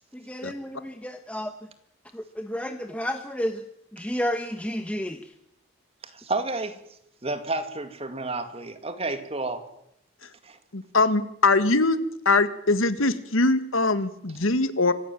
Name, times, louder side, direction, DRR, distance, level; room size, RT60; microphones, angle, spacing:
voice 1, 0.3-1.5 2.1-3.6 3.9-5.2, equal, 5° left, 6 dB, 1.0 m, -31 dB
voice 2, 6.1-6.8 7.2-9.6 10.4-10.6, right 2 dB, 30° right, 9 dB, 2.2 m, -30 dB
voice 3, 10.7-14.9, left 3 dB, 75° left, 13 dB, 1.6 m, -22 dB
25.5 x 15.5 x 9.2 m, 0.78 s
head